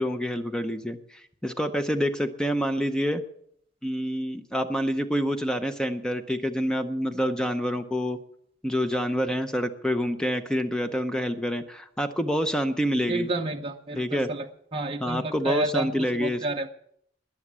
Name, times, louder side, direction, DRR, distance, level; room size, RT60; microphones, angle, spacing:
voice 1, 0.0-3.2 3.8-8.2 8.6-13.3 13.9-14.3 15.0-16.4, equal, 5° left, 7 dB, 0.7 m, -27 dB
voice 2, 13.1-14.4 14.7-16.7, right 2 dB, 30° right, 2 dB, 0.8 m, -30 dB
21.0 x 7.2 x 7.4 m, 0.70 s
head